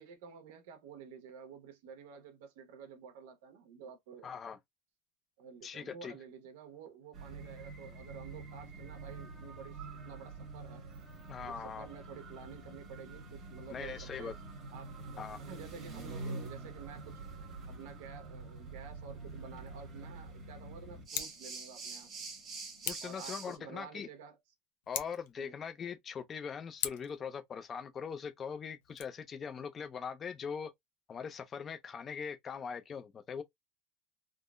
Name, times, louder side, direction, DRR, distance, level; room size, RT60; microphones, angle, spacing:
voice 1, 0.0-4.4 5.4-10.8 11.4-14.3 14.7-17.2 17.7-22.1 23.0-24.4 25.4-25.5, right 6 dB, 75° right, 1.0 m, -51 dB
voice 2, 4.2-4.6 5.6-6.2 11.3-11.9 13.7-14.3 15.2-15.4 22.9-24.1 24.9-30.7 31.1-33.4, left 6 dB, 20° left, 0.4 m, -41 dB
sound 1, 7.1-23.6, right 3 dB, 25° right, 1.3 m, -46 dB
Scissors, 21.0-21.4 22.8-23.2 24.8-25.3 26.8-27.2 28.8-29.0, left 12 dB, 75° left, 0.6 m, -39 dB
3.6 x 2.0 x 2.4 m
supercardioid pair, 165°, 0 cm